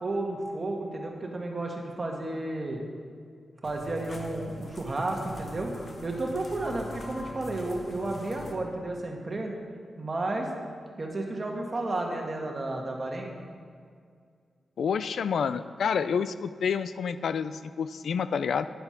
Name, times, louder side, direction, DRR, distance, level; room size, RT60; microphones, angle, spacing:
voice 1, 0.0-2.8 3.6-5.7 6.0-9.6 10.0-10.5 11.0-13.3, right 2 dB, 30° right, 0 dB, 1.5 m, -32 dB
sound 1, 3.6-8.5, left 1 dB, 35° left, 1.2 m, -43 dB
voice 2, 14.8-18.7, left 6 dB, 75° left, 13 dB, 0.4 m, -28 dB
10.5 x 7.9 x 5.8 m, 2.1 s
wide cardioid pair, 165°, 0 cm